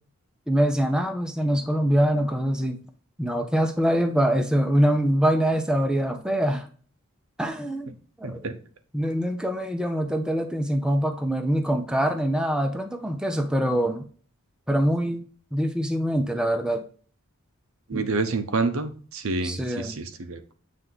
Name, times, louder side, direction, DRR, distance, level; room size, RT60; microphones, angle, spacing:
voice 1, 0.5-2.8 3.2-6.7 7.4-7.9 8.2-8.5 8.9-14.1 14.7-15.2 15.5-16.8 17.9-18.1 19.4-20.0, equal, 5° right, 5 dB, 0.5 m, -24 dB
voice 2, 8.2-8.6 17.9-20.5, right 3 dB, 65° right, 9 dB, 0.7 m, -28 dB
7.5 x 3.4 x 3.8 m, 0.41 s
head